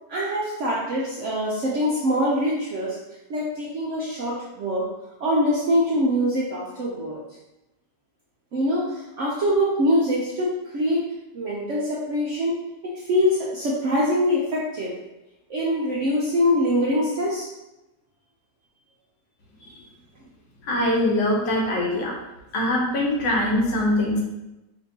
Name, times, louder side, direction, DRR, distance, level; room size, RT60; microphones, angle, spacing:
voice 1, 0.1-3.0 3.3-4.9 5.2-7.2 8.5-11.0 11.3-15.0 15.5-17.5, equal, 70° right, -5 dB, 0.7 m, -24 dB
voice 2, 20.7-22.1 22.5-24.2, left 1 dB, 90° left, -2 dB, 1.6 m, -23 dB
5.2 x 2.6 x 2.7 m, 0.97 s
omnidirectional pair, 1.9 m